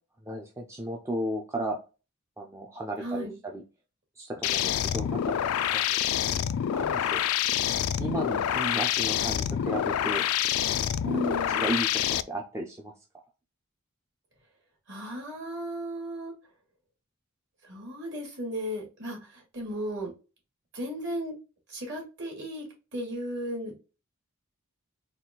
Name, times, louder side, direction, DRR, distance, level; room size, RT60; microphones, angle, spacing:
voice 1, 0.2-1.8 2.4-3.6 4.2-5.3 5.7-6.1 6.7-7.2 8.0-10.2 11.0-12.9, right 1 dB, 15° right, 1 dB, 0.4 m, -34 dB
voice 2, 3.0-3.4 11.0-11.6 14.9-16.3 17.6-20.1 20.7-21.4 21.7-23.7, equal, 55° right, 0 dB, 2.3 m, -35 dB
sound 1, 4.4-12.2, left 10 dB, 85° left, 0.3 m, -27 dB
4.3 x 2.3 x 3.6 m, 0.31 s
head